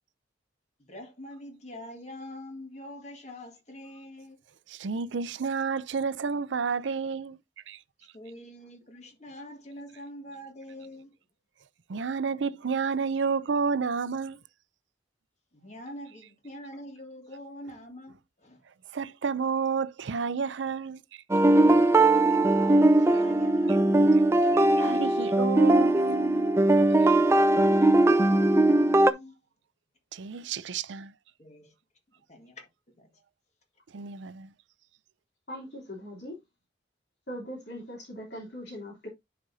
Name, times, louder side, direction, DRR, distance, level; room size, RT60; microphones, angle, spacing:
voice 1, 0.9-4.4 8.1-11.1 15.5-18.6 21.9-24.1 27.1-29.4 31.4-31.7 32.3-33.1, equal, 40° left, 1.9 m, -44 dB
voice 2, 4.7-7.4 7.7-7.8 11.9-14.4 18.9-21.2 24.4-26.5 30.1-31.1 33.9-34.5, right 5 dB, 80° right, 0.5 m, -30 dB
sound 1, 21.3-29.1, right 2 dB, 15° right, 0.4 m, -20 dB
voice 3, 35.5-36.3 37.3-39.1, equal, 65° left, 3.2 m, -40 dB
10.5 x 5.1 x 2.7 m
head